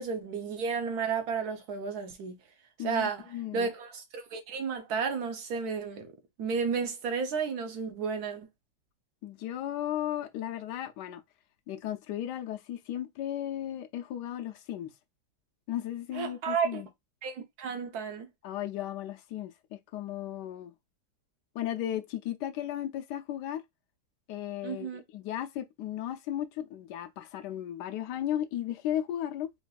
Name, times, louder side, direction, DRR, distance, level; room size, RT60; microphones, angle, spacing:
voice 1, 0.0-2.4 2.8-3.3 3.5-6.1 6.4-8.5 16.1-16.8 17.2-18.3 24.6-25.0, right 5 dB, 70° right, 1.0 m, -32 dB
voice 2, 2.8-3.7 9.2-11.2 11.7-14.9 15.7-16.9 18.4-20.7 21.5-23.6 24.3-29.5, left 11 dB, 80° left, 1.2 m, -35 dB
4.0 x 2.5 x 2.2 m
omnidirectional pair, 1.8 m